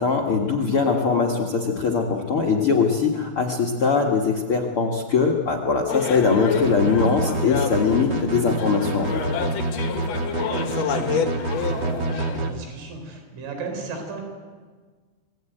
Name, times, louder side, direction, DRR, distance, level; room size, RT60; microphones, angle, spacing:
voice 1, 0.0-9.2, left 5 dB, 75° left, 4 dB, 1.2 m, -21 dB
sound 1, 5.9-12.4, left 7 dB, 60° left, 1.9 m, -29 dB
sound 2, 6.6-12.5, right 3 dB, 60° right, 1.1 m, -27 dB
voice 2, 10.3-14.2, right 4 dB, 85° right, 4 dB, 6.7 m, -35 dB
27.0 x 21.0 x 9.2 m, 1.5 s
omnidirectional pair, 5.6 m